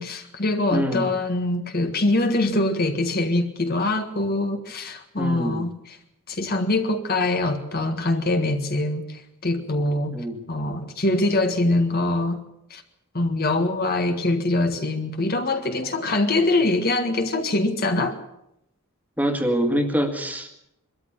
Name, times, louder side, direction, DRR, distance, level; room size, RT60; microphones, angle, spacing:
voice 1, 0.0-6.0 6.3-10.1 10.5-12.4 12.7-12.8 13.1-18.2, left 2 dB, 45° left, 6 dB, 1.7 m, -23 dB
voice 2, 0.7-1.1 5.2-5.7 10.1-10.4 19.2-20.5, equal, 5° right, 4 dB, 2.0 m, -24 dB
23.0 x 13.5 x 8.8 m, 0.78 s
head